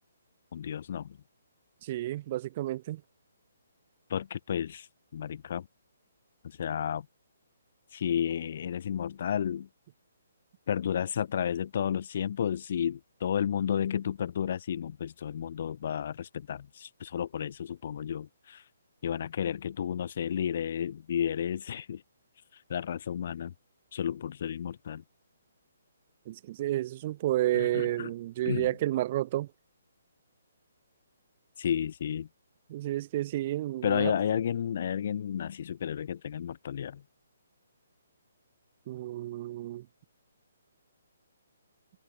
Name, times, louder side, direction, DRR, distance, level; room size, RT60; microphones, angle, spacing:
voice 1, 0.5-1.2 4.1-5.7 6.4-7.1 7.9-9.7 10.7-18.6 19.0-22.0 22.5-23.5 23.9-25.0 27.5-28.1 28.5-28.7 31.6-32.3 33.8-37.0, left 8 dB, 50° left, 0.5 m, -32 dB
voice 2, 1.8-3.0 26.3-29.5 32.7-34.1 38.9-39.9, right 14 dB, 35° right, 0.7 m, -31 dB
hypercardioid pair, 160°, 0 cm